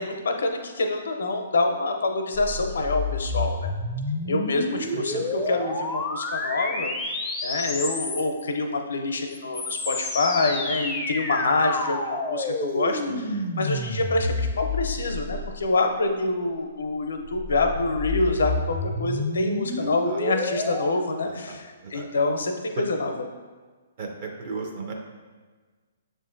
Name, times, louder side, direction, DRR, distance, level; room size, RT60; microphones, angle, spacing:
voice 1, 0.0-3.7 4.2-6.9 7.4-23.1, left 2 dB, 75° left, 4 dB, 0.5 m, -26 dB
sound 1, 2.3-8.5 9.3-15.9 17.0-20.9, left 2 dB, 10° left, 0.4 m, -30 dB
voice 2, 4.7-5.5 13.1-13.8 19.8-20.3 21.2-22.1 22.7-22.8 24.0-24.9, right 4 dB, 45° right, 1 dB, 0.7 m, -37 dB
6.6 x 2.5 x 2.5 m, 1.4 s
hypercardioid pair, 135°, 0 cm